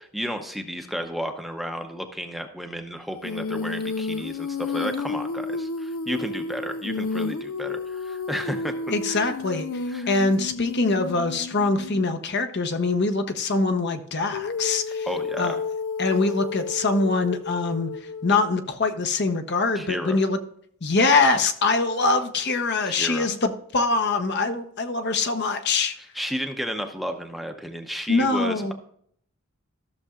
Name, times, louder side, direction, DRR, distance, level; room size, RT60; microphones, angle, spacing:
voice 1, 0.0-8.7 9.1-9.3 9.9-10.1 15.0-15.6 19.8-20.2 22.8-23.3 26.1-28.7, equal, ahead, 5 dB, 0.7 m, -32 dB
Female singing, 3.2-12.1 14.3-18.5, left 4 dB, 85° left, 0.5 m, -31 dB
voice 2, 8.9-15.1 15.4-15.6 16.0-20.4 20.8-25.9 28.1-28.7, left 3 dB, 55° left, 7 dB, 0.9 m, -23 dB
14.0 x 6.7 x 2.4 m, 0.66 s
head